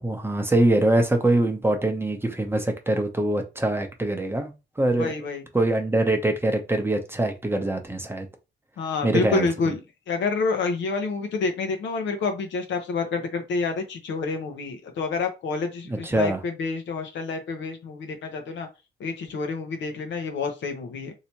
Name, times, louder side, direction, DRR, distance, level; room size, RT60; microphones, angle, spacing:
voice 1, 0.0-5.1 5.5-8.3 9.0-9.5 15.9-16.4, right 1 dB, 10° right, 0.7 m, -23 dB
voice 2, 5.0-5.4 8.8-9.8 10.1-18.7 19.0-21.1, left 4 dB, 70° left, 0.8 m, -28 dB
3.2 x 2.8 x 2.9 m
cardioid pair, 90°, 20 cm